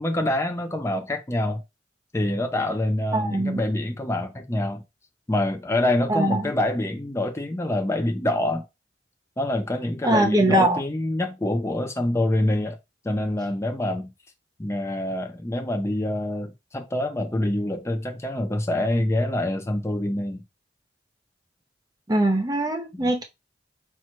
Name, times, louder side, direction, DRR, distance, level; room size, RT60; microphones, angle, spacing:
voice 1, 0.0-1.6 2.1-4.8 5.3-8.6 9.4-12.8 13.0-14.1 14.6-20.4 22.9-23.1, left 1 dB, 15° left, 0.5 m, -26 dB
voice 2, 3.1-3.6 6.1-6.5 10.0-10.8 22.1-23.2, right 1 dB, 20° right, 0.8 m, -22 dB
4.5 x 2.4 x 4.4 m
head